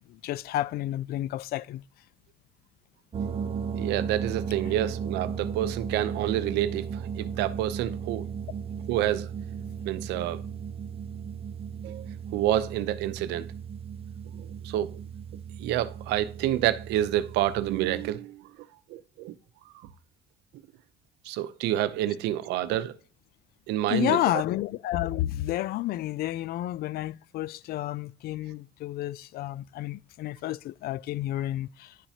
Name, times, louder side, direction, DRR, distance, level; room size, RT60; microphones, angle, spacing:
voice 1, 0.1-1.8 23.9-32.0, left 14 dB, 65° left, 0.4 m, -30 dB
sound 1, 3.1-18.1, right 7 dB, 35° right, 0.8 m, -36 dB
voice 2, 3.8-8.2 8.9-9.3 9.9-10.4 11.8-12.1 12.3-13.5 14.4-14.9 15.6-18.4 18.9-19.3 21.3-22.9 23.7-24.2, right 13 dB, 90° right, 0.7 m, -28 dB
11.0 x 5.8 x 2.8 m
cardioid pair, 110°, 17 cm